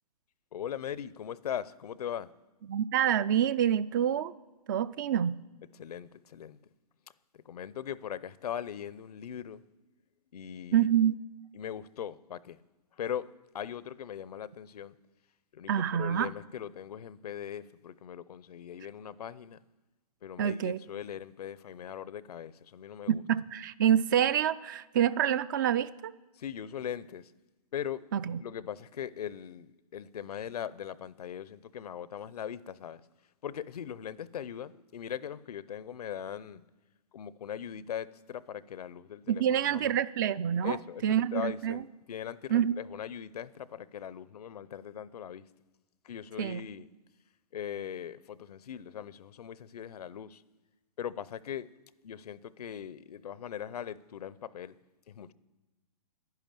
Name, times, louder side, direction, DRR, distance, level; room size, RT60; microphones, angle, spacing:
voice 1, 0.5-2.3 5.8-6.6 7.3-9.6 10.3-10.9 11.5-12.6 13.0-13.3 13.5-14.9 15.5-19.6 20.2-23.2 26.4-27.3 27.7-28.0 28.4-33.0 33.4-36.6 37.1-40.0 40.6-41.0 41.3-45.4 46.0-46.9 47.5-50.4 51.0-51.7 52.0-54.7 55.1-55.3, left 9 dB, 70° left, 0.6 m, -40 dB
voice 2, 2.7-4.3 4.7-5.4 10.7-11.2 15.7-16.3 20.4-20.8 23.1-26.1 28.1-28.4 39.3-41.8 42.5-42.8 46.4-46.6, right 9 dB, 30° right, 0.3 m, -27 dB
10.5 x 10.5 x 7.5 m
hypercardioid pair, 145°, 20 cm